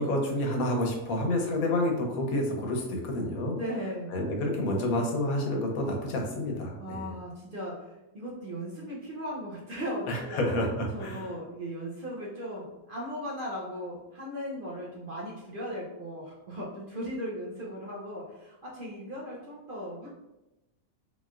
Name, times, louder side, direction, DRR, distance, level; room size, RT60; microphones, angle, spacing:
voice 1, 0.0-3.6 4.1-7.1 10.1-11.2, left 1 dB, 85° left, 1 dB, 1.2 m, -29 dB
voice 2, 3.5-4.2 6.8-10.4 10.9-20.1, equal, 50° right, -4 dB, 0.7 m, -37 dB
3.6 x 3.1 x 2.4 m, 1.0 s
omnidirectional pair, 1.5 m